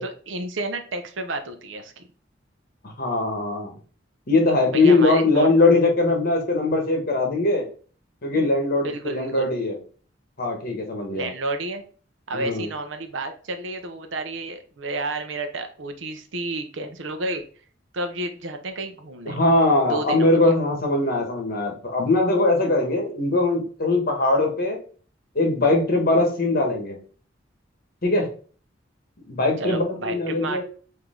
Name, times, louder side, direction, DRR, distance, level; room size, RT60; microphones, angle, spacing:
voice 1, 0.0-2.0 4.7-5.5 8.8-9.5 11.2-11.8 12.3-17.4 17.9-19.4 19.9-20.5 29.6-30.6, right 2 dB, 90° right, 7 dB, 0.8 m, -31 dB
voice 2, 3.0-3.7 4.3-7.7 8.2-9.8 10.4-11.3 12.3-12.7 19.2-24.8 25.3-27.0 28.0-28.3 29.3-30.6, left 2 dB, 50° left, 2 dB, 1.3 m, -21 dB
4.9 x 2.8 x 3.6 m, 0.41 s
head